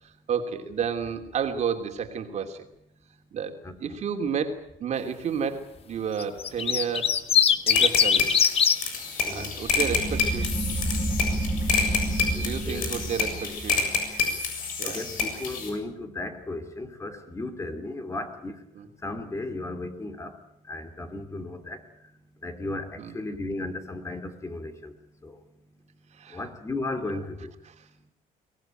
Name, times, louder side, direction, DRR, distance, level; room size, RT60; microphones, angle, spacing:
voice 1, 0.0-2.7 3.3-7.2 7.7-8.5 9.3-10.5 12.4-13.8 14.8-15.1 18.7-18.9 23.0-23.2 26.1-26.4 27.7-27.9, right 7 dB, 50° right, 6 dB, 2.9 m, -31 dB
voice 2, 3.6-4.0 9.2-9.5 12.3-12.9 13.4-13.5 14.8-18.6 19.0-20.3 20.7-21.8 22.4-24.9 25.2-25.3 26.3-27.5, left 2 dB, 20° left, 9 dB, 2.9 m, -35 dB
sound 1, 6.2-8.8 10.0-10.5, left 8 dB, 40° left, 1.4 m, -21 dB
sound 2, 7.7-15.7, left 6 dB, 70° left, 7.3 m, -28 dB
sound 3, 9.8-15.0, right 1 dB, 10° right, 4.8 m, -30 dB
24.0 x 18.5 x 9.1 m, 0.78 s
cardioid pair, 125°, 15 cm